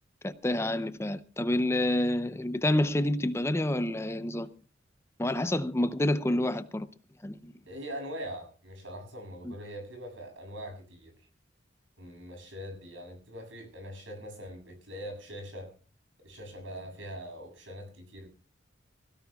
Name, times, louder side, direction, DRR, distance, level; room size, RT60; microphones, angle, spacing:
voice 1, 0.2-4.5 5.2-6.9 7.2-7.5 9.4-9.5, left 1 dB, 15° left, 0.6 m, -28 dB
voice 2, 7.7-11.1 12.0-15.7 16.2-18.3, equal, 70° right, 7.5 m, -42 dB
24.5 x 16.5 x 2.3 m
head